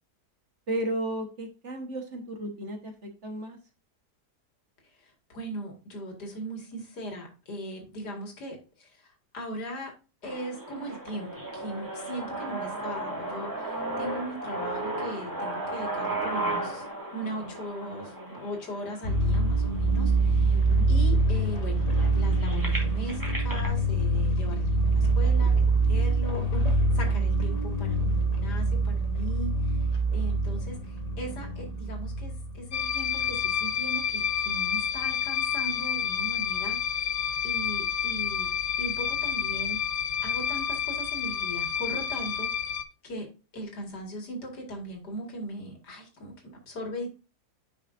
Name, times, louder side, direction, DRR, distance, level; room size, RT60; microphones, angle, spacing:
voice 1, 0.7-3.6 20.5-20.9, right 1 dB, 45° right, 4 dB, 1.5 m, -34 dB
voice 2, 5.0-9.9 10.2-16.9 17.1-20.6 20.9-21.8 22.1-29.8 30.1-37.2 37.4-38.5 38.8-42.5 43.0-43.3 43.5-47.1, equal, 80° left, 2 dB, 2.6 m, -39 dB
sound 1, 10.2-20.2 20.8-20.9 21.2-23.7, right 2 dB, 10° right, 2.2 m, -35 dB
sound 2, 19.0-33.6 35.0-35.1, right 2 dB, 25° left, 1.2 m, -25 dB
sound 3, 32.7-42.8, left 8 dB, 60° left, 0.8 m, -29 dB
9.8 x 5.6 x 2.6 m, 0.32 s
omnidirectional pair, 1.7 m